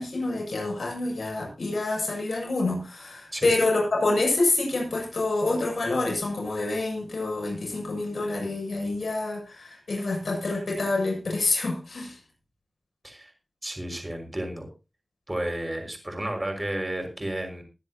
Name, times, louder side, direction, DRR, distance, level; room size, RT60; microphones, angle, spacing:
voice 1, 0.0-12.1, left 2 dB, 85° left, 0 dB, 7.4 m, -27 dB
voice 2, 13.6-14.7 15.3-17.6, right 1 dB, 25° right, 4 dB, 5.9 m, -32 dB
23.0 x 10.0 x 2.9 m, 0.29 s
wide cardioid pair, 60°, 0 cm